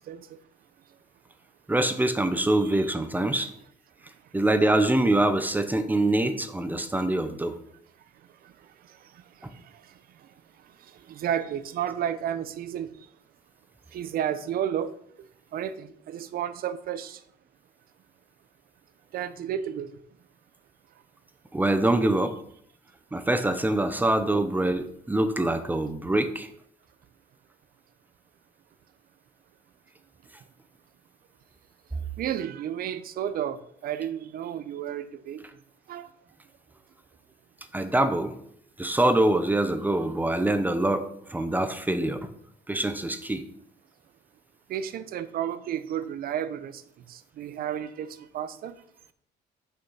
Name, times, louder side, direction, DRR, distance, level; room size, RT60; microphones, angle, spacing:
voice 1, 1.7-3.5 4.3-7.5 9.4-9.5 21.5-22.3 23.1-26.5 37.7-38.3 38.8-42.3 42.7-43.4, right 1 dB, 10° right, 9 dB, 0.8 m, -24 dB
voice 2, 2.6-2.9 8.4-8.5 11.1-12.9 13.9-14.9 15.5-17.2 19.1-19.9 32.2-35.4 35.9-36.1 44.7-46.8 47.1-48.7, right 10 dB, 60° right, 14 dB, 0.7 m, -32 dB
6.4 x 5.9 x 5.5 m, 0.68 s
cardioid pair, 110°, 17 cm